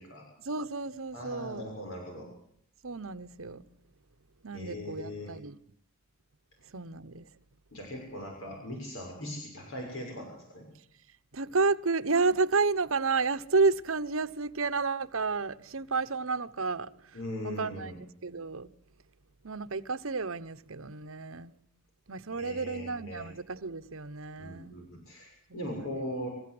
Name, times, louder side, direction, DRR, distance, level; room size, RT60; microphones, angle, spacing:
voice 1, 0.4-1.7 2.8-3.6 4.4-5.6 6.7-7.3 11.3-17.2 17.4-18.7 19.4-21.5 22.1-24.7 25.5-26.0, right 4 dB, 80° right, 1.1 m, -31 dB
voice 2, 1.1-2.3 4.5-5.3 7.7-10.7 17.1-18.0 22.3-23.3 24.4-26.3, equal, 80° left, 6.8 m, -40 dB
27.5 x 15.5 x 7.9 m
head